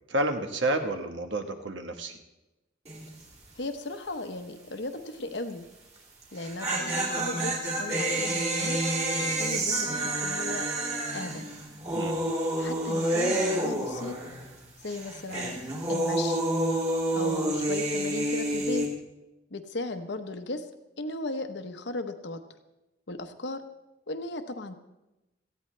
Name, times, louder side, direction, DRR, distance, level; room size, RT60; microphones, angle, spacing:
voice 1, 0.1-2.2 11.9-12.2, right 1 dB, 75° right, 6 dB, 1.4 m, -30 dB
sound 1, 2.9-3.2 3.5-3.6 6.2-14.6 14.8-18.9, right 1 dB, 35° right, 2.8 m, -29 dB
voice 2, 3.5-5.6 6.3-8.8 9.3-10.7 11.1-11.4 12.2-12.3 12.6-14.2 14.8-15.6 15.9-16.4 17.1-18.9 19.5-20.7 21.0-22.4 23.1-23.6 24.1-24.8, left 2 dB, 65° left, 7 dB, 1.0 m, -36 dB
18.0 x 15.0 x 3.3 m, 0.97 s
head